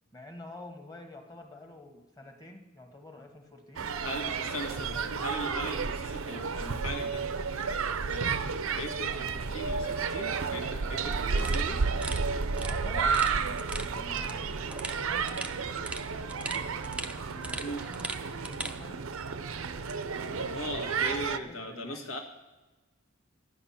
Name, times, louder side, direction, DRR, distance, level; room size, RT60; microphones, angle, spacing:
voice 1, 0.1-3.9 4.9-5.0 12.6-16.7 17.2-19.1 20.6-21.0 21.5-22.1, left 1 dB, 20° left, 4 dB, 1.4 m, -48 dB
sound 1, 3.8-21.4, right 5 dB, 80° right, 0.6 m, -32 dB
voice 2, 4.0-7.3 7.7-11.8 17.6-17.8 20.4-22.2, left 1 dB, 85° left, 3 dB, 1.8 m, -39 dB
sound 2, 11.4-18.8, right 2 dB, 5° right, 0.5 m, -41 dB
12.0 x 10.0 x 5.8 m, 1.2 s
head